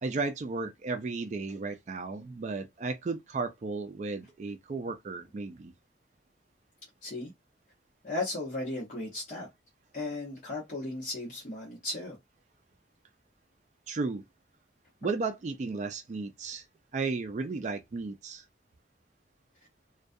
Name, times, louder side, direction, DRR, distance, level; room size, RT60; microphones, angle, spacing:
voice 1, 0.0-5.7 13.9-14.2 15.0-16.6 16.9-18.4, right 3 dB, 40° right, 0.3 m, -34 dB
voice 2, 8.0-9.5 9.9-12.2, left 2 dB, 45° left, 0.9 m, -35 dB
2.3 x 2.2 x 2.5 m
head